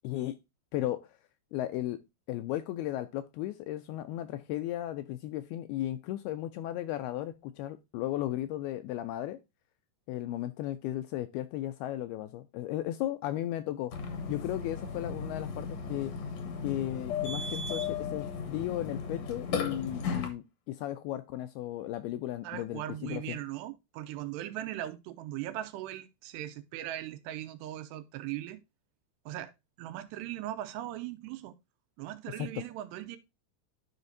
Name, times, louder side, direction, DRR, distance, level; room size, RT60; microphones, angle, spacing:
voice 1, 0.0-0.4 0.7-1.2 1.5-2.0 2.3-9.4 10.1-13.9 14.3-16.1 16.6-23.4 32.4-32.6, left 13 dB, 85° left, 2.3 m, -35 dB
Burping eructation, 13.9-20.3, left 5 dB, 65° left, 1.7 m, -35 dB
voice 2, 22.4-28.6 29.3-29.5 29.8-31.6 32.0-33.2, right 13 dB, 80° right, 2.9 m, -39 dB
12.0 x 5.2 x 2.6 m
omnidirectional pair, 4.9 m